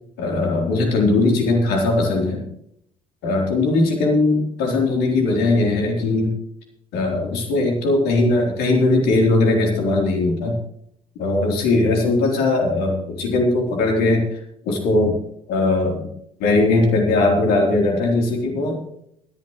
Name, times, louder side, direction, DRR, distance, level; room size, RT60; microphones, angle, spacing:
voice 1, 0.2-2.5 3.2-6.3 6.9-10.6 11.2-14.4 14.6-15.2 15.5-16.1 16.4-18.8, left 2 dB, 65° left, 1 dB, 3.6 m, -19 dB
20.0 x 11.0 x 3.1 m, 0.72 s
figure-of-eight pair, 50°, 17 cm